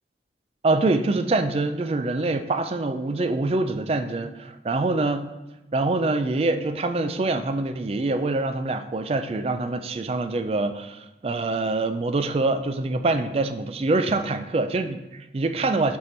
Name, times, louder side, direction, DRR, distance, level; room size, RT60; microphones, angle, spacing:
voice 1, 0.6-5.3 5.7-16.0, right 2 dB, 35° right, 9 dB, 0.3 m, -25 dB
6.6 x 3.7 x 4.4 m, 1.0 s
head